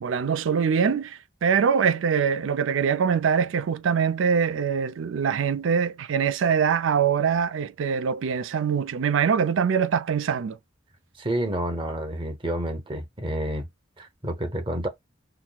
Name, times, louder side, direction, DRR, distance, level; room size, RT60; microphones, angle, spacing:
voice 1, 0.0-10.6, right 6 dB, 80° right, 0.4 m, -23 dB
voice 2, 11.2-13.7 14.0-14.9, right 1 dB, 25° right, 0.9 m, -29 dB
5.9 x 2.0 x 2.3 m
head